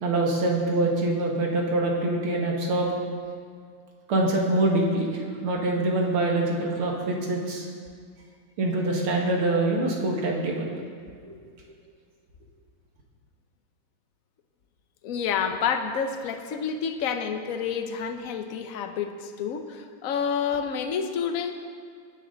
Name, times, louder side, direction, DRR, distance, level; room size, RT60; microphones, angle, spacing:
voice 1, 0.0-2.9 4.1-7.7 8.6-10.7 11.3-11.4, right 2 dB, 80° right, -1 dB, 2.8 m, -25 dB
voice 2, 15.0-21.5, left 7 dB, 50° left, 6 dB, 1.1 m, -29 dB
20.5 x 10.5 x 4.0 m, 2.1 s
omnidirectional pair, 2.3 m